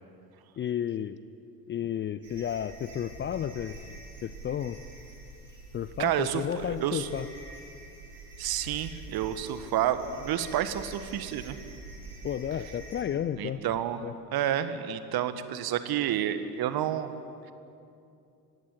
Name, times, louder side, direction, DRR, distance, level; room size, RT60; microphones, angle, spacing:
voice 1, 0.6-1.2 1.7-4.8 5.7-7.3 12.2-13.6 14.0-14.1, left 9 dB, 25° left, 14 dB, 0.5 m, -32 dB
sound 1, 2.2-13.0, right 3 dB, 90° right, 6.0 m, -46 dB
voice 2, 6.0-7.1 8.4-11.6 13.4-17.1, right 10 dB, 45° right, 11 dB, 1.6 m, -30 dB
18.0 x 17.0 x 10.0 m, 2.6 s
figure-of-eight pair, 65°, 50 cm